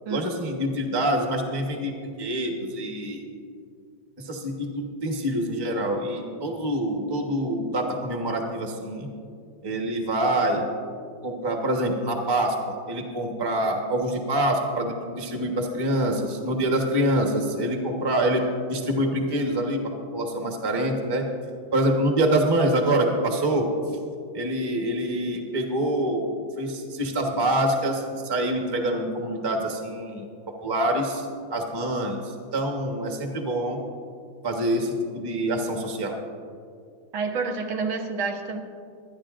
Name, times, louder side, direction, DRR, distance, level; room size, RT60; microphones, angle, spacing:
voice 1, 0.1-1.9 2.2-3.2 4.2-9.1 9.6-10.7 11.2-18.4 18.7-19.8 20.1-21.2 21.7-23.7 24.3-30.3 30.6-33.8 34.4-36.2, right 1 dB, 15° right, 1 dB, 0.9 m, -26 dB
voice 2, 37.1-38.6, right 4 dB, 80° right, 3 dB, 1.9 m, -28 dB
24.0 x 9.9 x 2.5 m, 2.3 s
omnidirectional pair, 2.2 m